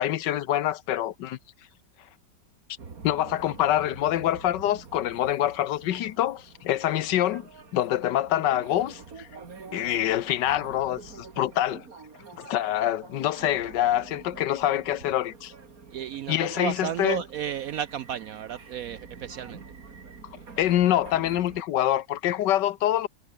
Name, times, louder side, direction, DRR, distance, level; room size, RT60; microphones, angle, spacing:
voice 1, 0.0-1.4 3.0-7.5 7.7-9.3 9.7-11.8 12.4-15.5 16.3-17.2 20.6-23.1, left 12 dB, 75° left, 1.4 m, -25 dB
sound 1, 2.8-21.6, right 5 dB, 50° right, 2.8 m, -47 dB
voice 2, 15.9-19.6, right 10 dB, 70° right, 0.8 m, -33 dB
omnidirectional pair, 1.9 m